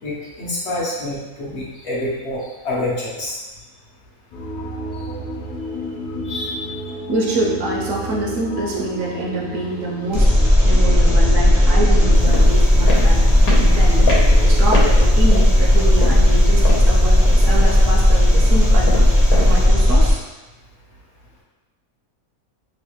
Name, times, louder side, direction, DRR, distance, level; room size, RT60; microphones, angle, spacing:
voice 1, 0.0-3.4 6.2-6.7, left 1 dB, 55° left, -6 dB, 0.9 m, -27 dB
sound 1, 4.3-14.6, equal, 70° left, 0.5 m, -32 dB
voice 2, 7.1-19.0 19.4-20.2, right 1 dB, 70° right, -2 dB, 0.9 m, -26 dB
Engine, 10.1-20.1, left 1 dB, 25° right, 0.4 m, -14 dB
sound 2, 12.1-19.7, left 2 dB, 90° left, 1.3 m, -28 dB
3.1 x 2.4 x 2.9 m, 1.1 s
omnidirectional pair, 1.5 m